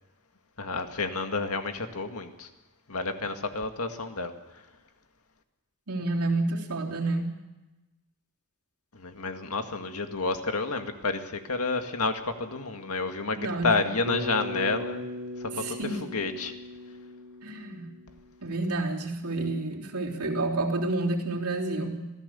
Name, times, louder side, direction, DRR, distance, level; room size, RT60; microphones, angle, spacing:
voice 1, 0.6-2.5 2.9-4.3 8.9-15.0 15.4-16.5, left 3 dB, 85° left, 6 dB, 2.0 m, -30 dB
voice 2, 5.9-7.4 13.4-13.7 15.6-16.0 17.4-17.9 18.4-22.0, right 2 dB, 90° right, -1 dB, 3.4 m, -29 dB
Bass guitar, 14.1-18.4, left 1 dB, 60° right, 1.1 m, -39 dB
26.0 x 16.5 x 7.0 m, 1.1 s
head